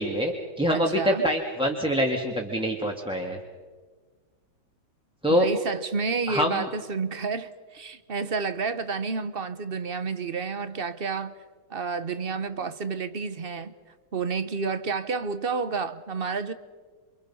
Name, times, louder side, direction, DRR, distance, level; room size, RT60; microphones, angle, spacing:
voice 1, 0.0-3.4 5.2-5.5 6.3-6.7, equal, 5° right, 1.9 m, -25 dB
voice 2, 0.7-1.2 5.3-11.3 11.7-13.7 14.1-16.5, right 4 dB, 40° right, 0.9 m, -30 dB
28.0 x 26.0 x 5.5 m
omnidirectional pair, 2.1 m